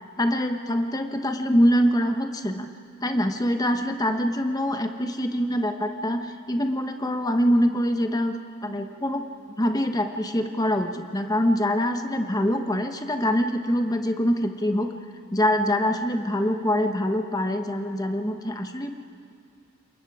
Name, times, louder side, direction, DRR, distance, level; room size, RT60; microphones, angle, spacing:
voice 1, 0.2-2.7 3.0-8.3 8.6-9.2 9.6-14.9 15.3-18.9, equal, 15° left, 6 dB, 1.1 m, -24 dB
28.0 x 22.5 x 4.9 m, 2.4 s
head